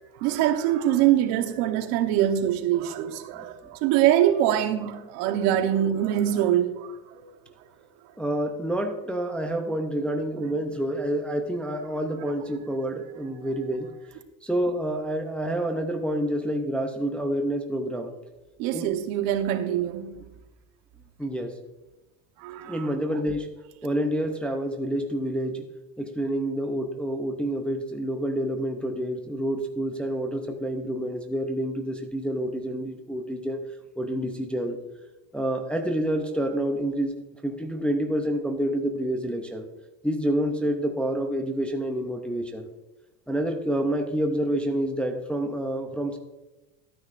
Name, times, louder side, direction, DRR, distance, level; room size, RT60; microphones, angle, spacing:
voice 1, 0.2-7.2 18.6-20.2 22.4-22.9, right 11 dB, 75° right, 1.2 m, -24 dB
voice 2, 8.2-13.9 14.4-18.1 18.7-18.9 21.2-21.6 22.7-23.5 23.8-25.7 26.0-33.6 34.0-34.8 35.3-37.1 37.4-39.7 40.0-42.7 43.3-46.2, right 1 dB, ahead, 0.5 m, -28 dB
12.5 x 9.6 x 2.6 m
supercardioid pair, 130°, 48 cm